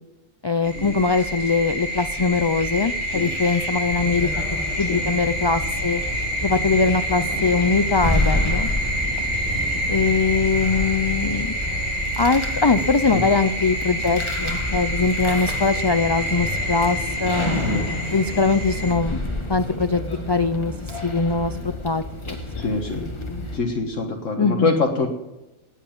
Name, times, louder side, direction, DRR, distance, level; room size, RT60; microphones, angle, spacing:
voice 1, 0.4-4.3 4.8-6.0 6.4-8.7 9.9-11.5 12.2-17.5 18.1-19.2 19.5-20.0 20.3-20.7 21.0-21.5 21.8-22.4 24.4-24.8, left 4 dB, 45° left, 11 dB, 0.3 m, -21 dB
sound 1, 0.6-18.9, equal, 45° right, 6.7 m, -28 dB
sound 2, 3.9-23.6, left 1 dB, 20° left, 1.9 m, -29 dB
voice 2, 22.5-23.0 23.5-25.1, left 3 dB, 70° left, 2 dB, 1.8 m, -24 dB
19.0 x 8.3 x 7.3 m, 1.0 s
omnidirectional pair, 1.4 m